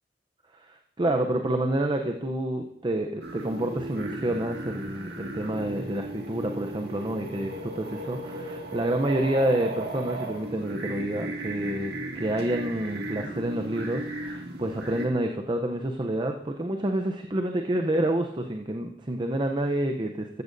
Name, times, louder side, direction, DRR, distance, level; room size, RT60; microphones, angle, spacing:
voice 1, 0.5-20.4, right 1 dB, 25° right, 4 dB, 0.6 m, -28 dB
sound 1, 3.2-15.1, right 1 dB, 65° right, 1.9 m, -36 dB
14.5 x 13.5 x 2.6 m, 0.74 s
head